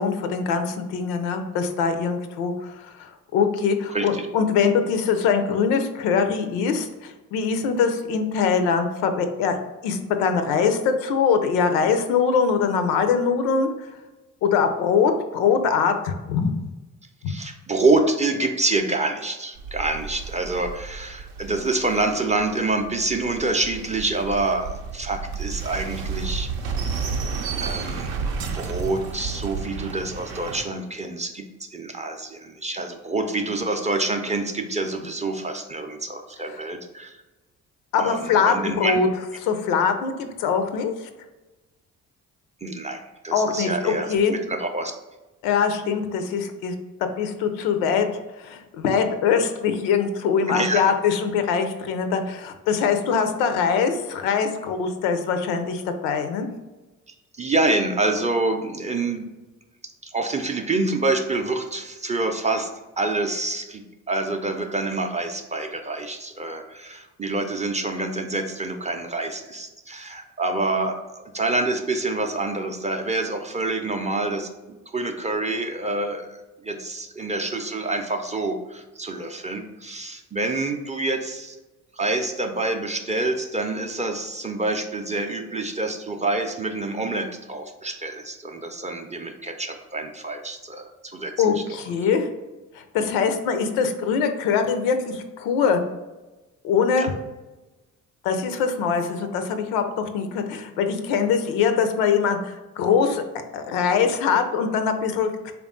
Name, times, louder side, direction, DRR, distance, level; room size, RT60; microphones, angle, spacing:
voice 1, 0.0-13.7 14.4-16.6 37.9-39.1 39.4-41.1 43.3-44.3 45.4-46.7 47.2-48.1 48.4-56.5 91.4-92.3 92.7-95.8 96.6-97.1 98.2-103.2 103.5-105.5, left 6 dB, 80° left, 8 dB, 0.5 m, -23 dB
voice 2, 3.9-4.3 17.3-26.5 27.6-37.2 37.9-39.0 42.6-44.9 50.5-50.9 57.4-59.3 60.0-62.7 63.0-81.6 81.9-91.8 97.0-97.1, right 2 dB, 20° right, 4 dB, 0.4 m, -27 dB
sound 1, 19.6-30.7, right 5 dB, 65° right, 0.6 m, -32 dB
3.4 x 2.3 x 3.6 m, 1.1 s
hypercardioid pair, 45°, 40 cm